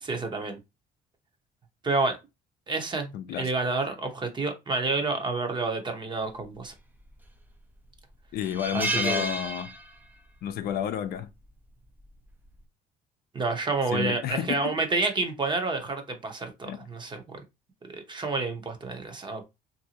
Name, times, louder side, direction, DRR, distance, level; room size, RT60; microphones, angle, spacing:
voice 1, 0.0-0.6 1.8-2.2 2.7-6.7 8.7-9.3 13.3-17.4 17.9-19.4, right 3 dB, 25° right, 0.9 m, -29 dB
voice 2, 3.1-3.5 8.3-9.7 10.4-11.3 13.9-14.8 16.7-16.8, left 9 dB, 65° left, 0.5 m, -31 dB
sound 1, 7.0-7.5 7.9-8.0 8.4-10.2 10.5-10.7 12.0-12.3, right 2 dB, 10° right, 0.5 m, -32 dB
3.3 x 2.7 x 2.8 m
cardioid pair, 110°, 17 cm